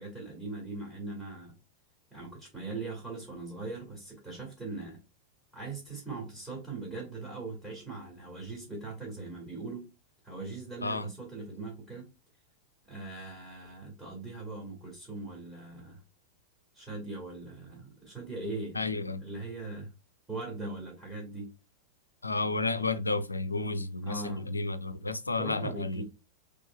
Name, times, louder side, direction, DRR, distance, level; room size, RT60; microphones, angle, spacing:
voice 1, 0.0-1.5 2.1-5.0 5.5-9.9 10.2-12.1 12.9-16.0 16.7-19.9 20.3-21.5 24.0-24.6 25.4-26.0, right 3 dB, 10° right, 1.7 m, -40 dB
voice 2, 10.8-11.1 18.7-19.2 22.2-26.0, left 3 dB, 80° left, 0.4 m, -32 dB
3.8 x 3.2 x 2.2 m
figure-of-eight pair, 90°, 0 cm